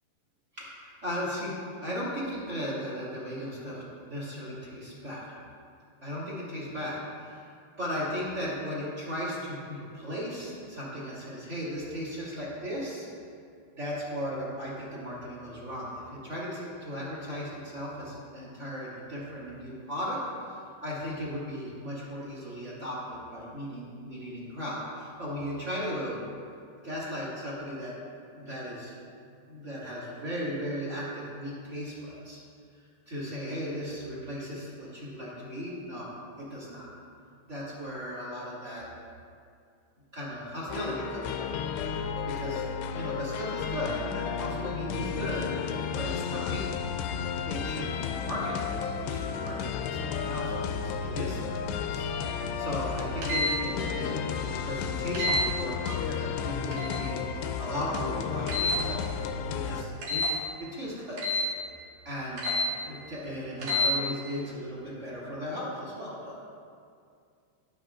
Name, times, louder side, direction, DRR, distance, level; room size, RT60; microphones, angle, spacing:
voice 1, 0.5-5.2 6.0-7.5 7.8-13.1 13.7-20.2 20.5-26.2 26.8-27.9 28.3-29.0 29.5-32.4 33.1-36.1 36.4-36.9 37.5-38.8 40.1-42.6 42.9-45.5 45.9-46.7 47.5-59.0 59.5-60.3 60.6-61.2 62.0-62.4 62.8-66.3, equal, 25° right, -8 dB, 1.7 m, -36 dB
sound 1, 40.7-59.8, left 6 dB, 85° left, 2.7 m, -33 dB
sound 2, 53.2-53.5 55.1-55.4 56.7-57.0 58.5-58.8 60.0-60.3 61.2-61.5 62.4-62.7 63.6-63.9, left 2 dB, 60° right, 2.3 m, -27 dB
20.5 x 7.0 x 2.5 m, 2.3 s
omnidirectional pair, 4.9 m